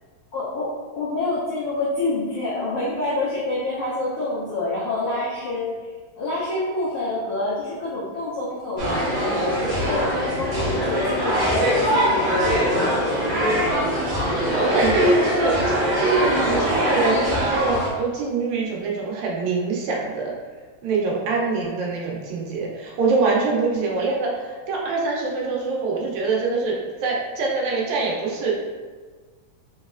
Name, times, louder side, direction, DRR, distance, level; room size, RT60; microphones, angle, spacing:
voice 1, 0.3-13.0, left 2 dB, 90° left, -7 dB, 1.2 m, -28 dB
sound 1, 8.8-17.9, equal, 55° right, 1.5 m, -22 dB
voice 2, 14.5-20.4 20.8-28.5, right 4 dB, 75° right, -3 dB, 2.0 m, -24 dB
4.6 x 3.0 x 2.4 m, 1.4 s
omnidirectional pair, 3.3 m